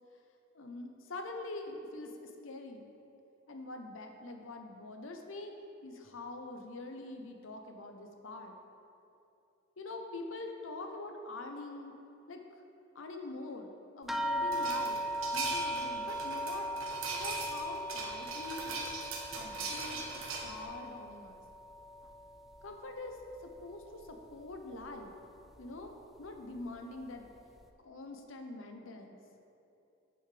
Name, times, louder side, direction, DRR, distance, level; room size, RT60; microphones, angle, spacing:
voice 1, 0.5-2.9 3.5-5.5 5.8-8.6 9.8-11.9 12.3-12.4 12.9-15.0 15.3-16.7 17.1-19.0 19.3-21.4 22.6-23.2 23.4-25.1 25.6-25.9 26.2-27.3 27.8-29.2, left 2 dB, 70° left, 4 dB, 0.8 m, -44 dB
sound 1, 14.1-22.9 23.2-24.1 24.8-24.9 25.4-25.5, right 1 dB, ahead, 0.4 m, -38 dB
sound 2, 14.5-20.6, right 4 dB, 85° right, 1.1 m, -40 dB
10.5 x 6.3 x 3.3 m, 2.8 s
head